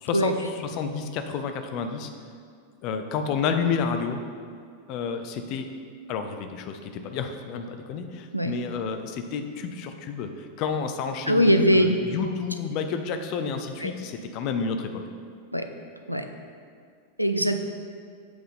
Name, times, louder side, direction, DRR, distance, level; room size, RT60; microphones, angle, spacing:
voice 1, 0.0-0.3 0.6-2.1 2.8-4.2 4.9-5.7 6.1-10.3 10.6-15.0, left 6 dB, 40° left, 6 dB, 0.6 m, -30 dB
voice 2, 11.3-11.9 13.8-13.9 15.5-15.7 16.1-16.2 17.2-17.6, equal, 90° right, 6 dB, 0.4 m, -21 dB
7.8 x 3.7 x 5.3 m, 2.2 s
figure-of-eight pair, 90°, 0 cm